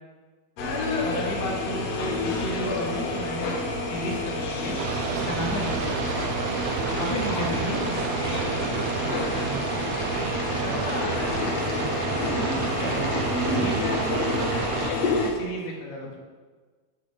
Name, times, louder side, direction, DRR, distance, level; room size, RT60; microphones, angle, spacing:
sound 1, 0.6-15.3, left 2 dB, 65° left, 1.7 m, -29 dB
voice 1, 1.0-4.8 5.1-6.0 7.0-7.8 10.6-13.1 13.4-16.2, left 1 dB, 85° left, -1 dB, 3.8 m, -33 dB
sound 2, 4.8-14.9, right 8 dB, 90° right, 2.7 m, -31 dB
voice 2, 6.9-7.3 8.2-9.0, right 1 dB, 40° right, -8 dB, 4.3 m, -38 dB
13.5 x 8.5 x 3.6 m, 1.4 s
omnidirectional pair, 4.5 m